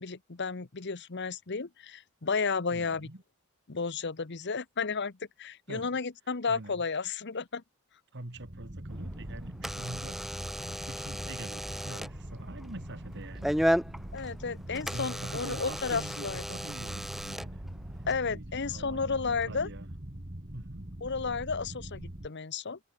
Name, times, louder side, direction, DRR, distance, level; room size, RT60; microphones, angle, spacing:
voice 1, 0.0-3.1 3.7-5.1 5.4-7.6 14.1-16.4 18.1-19.7 21.0-22.8, left 5 dB, 55° left, 1.0 m, -33 dB
voice 2, 2.7-3.2 5.7-6.0 6.5-6.8 8.1-13.6 14.9-17.6 18.3-19.9 20.5-20.9, right 1 dB, 55° right, 2.4 m, -44 dB
sound 1, 8.3-22.3, right 1 dB, 35° right, 2.1 m, -42 dB
Door / Alarm, 8.9-18.1, equal, ahead, 0.6 m, -35 dB
head